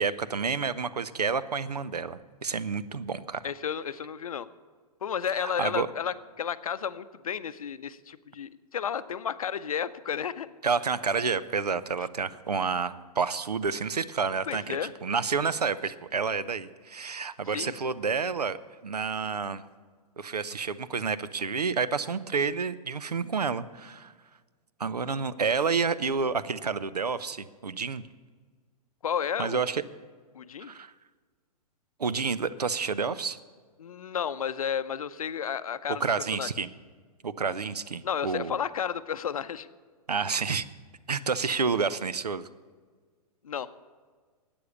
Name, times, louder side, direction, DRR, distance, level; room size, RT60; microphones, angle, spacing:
voice 1, 0.0-3.4 5.3-5.9 10.6-18.6 18.8-19.6 20.2-24.1 24.8-28.0 29.4-29.8 30.6-30.9 32.0-33.4 36.0-36.7 37.2-38.6 40.1-40.7 41.1-42.5, right 5 dB, 75° right, 16 dB, 0.6 m, -29 dB
voice 2, 3.4-4.5 5.0-10.5 14.5-14.9 17.5-17.7 29.0-29.6 30.3-30.7 33.8-36.0 36.4-36.5 38.0-39.7 43.4-43.7, left 8 dB, 60° left, 14 dB, 0.6 m, -32 dB
12.5 x 8.7 x 6.9 m, 1.5 s
figure-of-eight pair, 110°, 20 cm